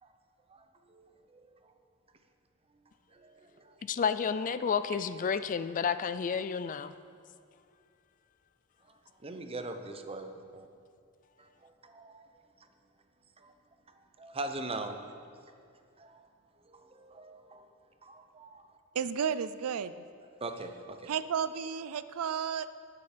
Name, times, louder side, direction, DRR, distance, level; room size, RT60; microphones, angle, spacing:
voice 1, 0.5-1.7 3.1-3.9 8.9-9.0 9.2-10.7 11.4-12.2 13.4-13.5 14.2-15.2 16.0-16.2 16.6-17.7 18.0-18.6 20.4-21.1, right 2 dB, 25° right, 6 dB, 0.8 m, -42 dB
voice 2, 3.8-6.9, left 6 dB, 35° left, 13 dB, 0.3 m, -31 dB
voice 3, 18.9-19.9 21.1-22.7, right 7 dB, 80° right, 14 dB, 0.4 m, -32 dB
18.5 x 6.9 x 5.1 m, 2.3 s
head